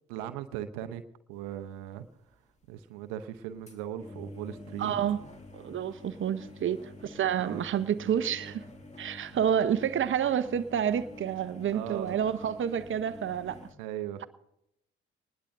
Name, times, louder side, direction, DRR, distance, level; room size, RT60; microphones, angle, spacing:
voice 1, 0.1-1.0 1.3-2.4 2.7-4.9 7.4-8.5 11.7-12.2 13.8-14.2, right 11 dB, 75° right, 0.8 m, -39 dB
sound 1, 1.4-1.5 1.9-2.0 2.6-2.7 3.3-13.7, left 2 dB, 20° left, 2.3 m, -48 dB
voice 2, 4.8-5.2 5.5-8.6 9.0-13.6, right 9 dB, 40° right, 0.8 m, -29 dB
22.5 x 20.0 x 2.6 m
hypercardioid pair, 45°, 30 cm